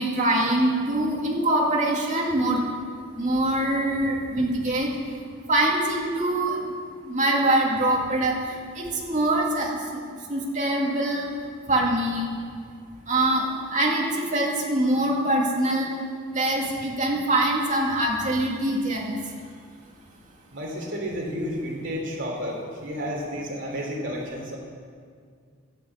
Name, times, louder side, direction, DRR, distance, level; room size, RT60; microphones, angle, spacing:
voice 1, 0.0-2.6 3.2-4.9 5.5-6.6 7.0-10.0 10.3-11.3 11.7-12.3 13.1-15.9 16.3-19.2, right 1 dB, 35° right, -1 dB, 2.1 m, -24 dB
voice 2, 20.5-24.6, equal, 60° right, -2 dB, 3.2 m, -31 dB
12.5 x 7.9 x 7.9 m, 2.1 s
head